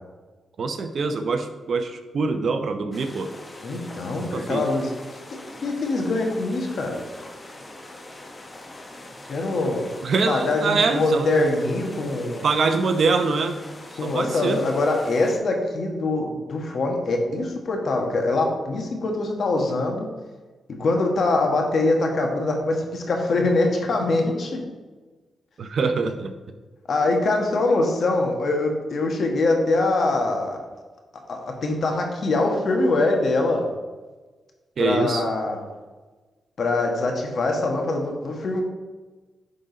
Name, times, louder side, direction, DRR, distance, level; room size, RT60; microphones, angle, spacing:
voice 1, 0.6-3.3 4.3-4.6 10.0-11.3 12.4-13.6 14.0-14.6 25.6-26.3 34.8-35.2, right 4 dB, 60° right, 8 dB, 0.7 m, -24 dB
sound 1, 2.9-15.4, left 1 dB, 30° left, 1.2 m, -42 dB
voice 2, 3.6-4.9 5.6-7.0 9.3-9.9 10.3-12.4 14.0-20.1 20.7-24.6 26.9-30.6 31.1-33.7 34.8-35.6 36.6-38.6, left 2 dB, 60° left, 2 dB, 1.5 m, -23 dB
10.5 x 3.9 x 4.0 m, 1.3 s
cardioid pair, 80°, 0 cm